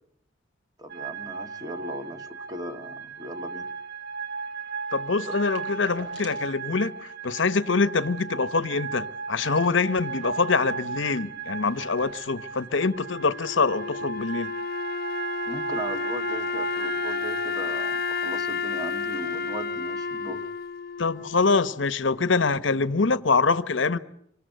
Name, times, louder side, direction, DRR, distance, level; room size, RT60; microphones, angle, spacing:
voice 1, 0.8-3.7 15.5-20.5, equal, 20° right, 1.9 m, -38 dB
sound 1, 0.9-18.4, right 5 dB, 60° right, 1.4 m, -36 dB
voice 2, 4.9-14.5 21.0-24.0, left 4 dB, 75° left, 1.0 m, -24 dB
sound 2, 5.3-6.6 6.9-7.0 7.3-7.5 7.9-9.0 9.2-9.3 9.5-10.8 11.7-11.8, right 1 dB, 85° right, 6.4 m, -48 dB
Wind instrument woodwind instrument, 12.9-21.9, left 5 dB, 50° left, 1.1 m, -31 dB
27.5 x 24.0 x 8.0 m
head